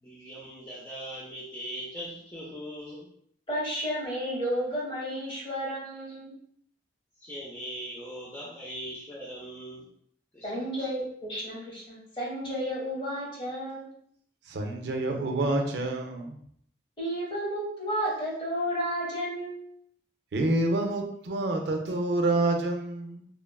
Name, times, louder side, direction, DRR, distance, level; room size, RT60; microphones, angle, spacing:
voice 1, 0.0-3.1 6.1-6.2 7.2-9.9 10.3-10.9, equal, 10° left, -7 dB, 0.4 m, -40 dB
voice 2, 3.5-6.4 10.4-13.9 17.0-19.6, equal, 25° left, -4 dB, 0.9 m, -32 dB
voice 3, 14.5-16.4 20.3-23.3, right 2 dB, 60° right, 3 dB, 0.4 m, -28 dB
3.0 x 2.3 x 2.2 m, 0.65 s
head